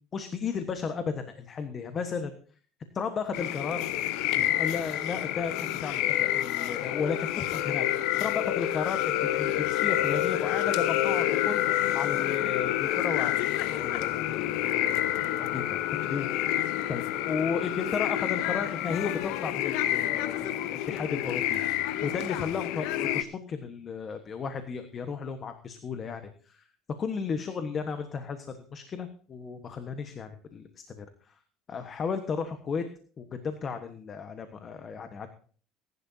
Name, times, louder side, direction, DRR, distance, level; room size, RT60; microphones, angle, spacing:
voice 1, 0.1-2.3 2.9-3.9 4.3-7.9 8.2-11.6 11.9-16.3 16.9-21.6 22.0-26.6 27.0-30.7 31.0-31.3 31.7-32.8 33.2-35.3, left 5 dB, 35° left, 8 dB, 1.3 m, -34 dB
sound 1, 3.3-23.2, left 13 dB, 75° left, 0.8 m, -28 dB
20.0 x 11.0 x 2.8 m, 0.43 s
supercardioid pair, 115°, 0 cm